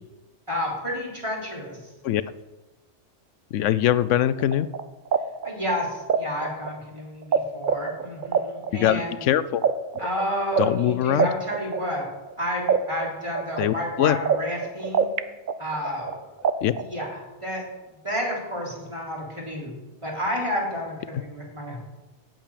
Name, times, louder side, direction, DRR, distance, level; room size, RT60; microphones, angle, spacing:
voice 1, 0.5-1.8 5.4-9.2 10.0-12.0 12.4-15.1 15.6-16.1 16.7-17.6 18.0-19.7 20.0-21.8, equal, 25° right, -4 dB, 3.6 m, -30 dB
voice 2, 3.5-4.7 8.7-9.6 10.6-11.3 13.6-14.2 16.6-16.7, left 11 dB, 85° left, 16 dB, 0.9 m, -22 dB
sound 1, 4.4-7.4 7.6-12.3 12.7-15.2 15.5-17.1, right 7 dB, 50° right, 0.7 m, -25 dB
8.9 x 8.8 x 8.5 m, 1.1 s
omnidirectional pair, 1.2 m